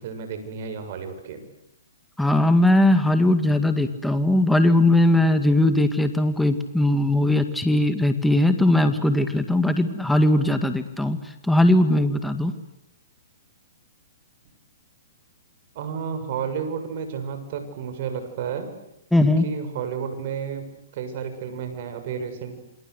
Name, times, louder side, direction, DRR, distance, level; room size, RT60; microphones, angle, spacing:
voice 1, 0.0-1.4 15.8-18.7 19.4-20.7 20.9-22.6, right 7 dB, 50° right, 8 dB, 7.1 m, -31 dB
voice 2, 2.2-11.2 11.4-12.5 19.1-19.5, left 1 dB, 5° left, 8 dB, 2.0 m, -19 dB
28.5 x 26.0 x 8.2 m, 0.81 s
hypercardioid pair, 145°, 0 cm